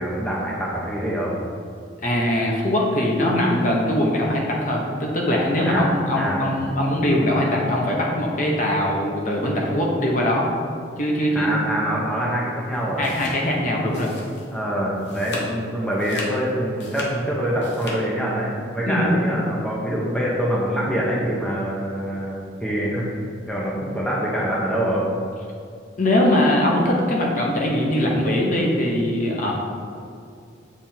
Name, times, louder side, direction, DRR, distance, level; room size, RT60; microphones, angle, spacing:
voice 1, 0.0-1.3 5.6-6.5 11.3-13.0 14.5-23.0 23.5-25.1, equal, 5° left, -5 dB, 0.8 m, -25 dB
voice 2, 2.0-10.5 11.0-11.8 13.0-14.1 18.9-19.1 26.0-29.5, left 1 dB, 45° left, -2 dB, 0.9 m, -21 dB
sound 1, 12.7-14.6 14.9-15.6 15.9-18.0, left 1 dB, 65° left, 1.2 m, -36 dB
7.4 x 3.4 x 4.3 m, 2.4 s
head